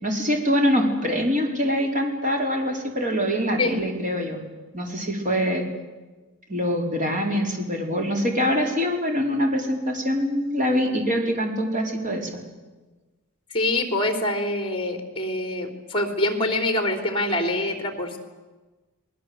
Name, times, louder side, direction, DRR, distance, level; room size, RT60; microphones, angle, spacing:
voice 1, 0.0-4.4 4.7-5.6 6.5-12.3, equal, 35° right, 2 dB, 4.5 m, -24 dB
voice 2, 13.5-18.2, left 2 dB, 25° left, 6 dB, 3.7 m, -25 dB
29.5 x 20.5 x 8.0 m, 1.2 s
head